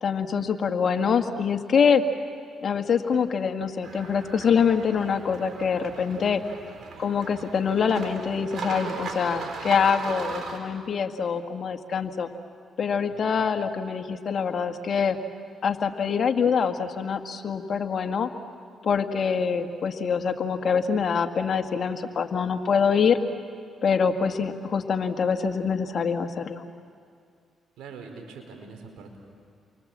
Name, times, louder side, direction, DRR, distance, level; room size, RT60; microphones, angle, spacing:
voice 1, 0.0-2.0 2.6-6.4 7.0-12.3 12.8-15.2 15.6-18.3 18.8-23.2 23.8-26.6, left 6 dB, 55° left, 6 dB, 1.7 m, -25 dB
sound 1, 3.8-10.6, right 4 dB, 60° right, 3.9 m, -37 dB
voice 2, 13.1-13.4 27.8-29.2, right 5 dB, 80° right, 3 dB, 4.8 m, -44 dB
30.0 x 24.5 x 7.5 m, 2.2 s
supercardioid pair, 65°, 0 cm